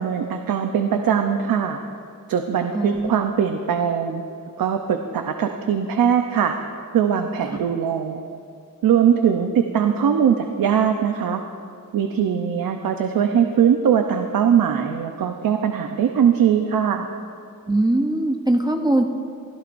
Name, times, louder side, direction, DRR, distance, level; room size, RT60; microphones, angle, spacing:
voice 1, 0.0-1.8 2.3-4.2 4.6-6.6 6.9-8.2 8.8-11.4 11.9-17.1, right 8 dB, 85° right, 5 dB, 0.8 m, -21 dB
voice 2, 2.7-3.3 7.5-7.6 17.7-19.0, right 1 dB, 10° right, 4 dB, 0.7 m, -21 dB
24.0 x 15.5 x 2.6 m, 2.3 s
wide cardioid pair, 140°, 34 cm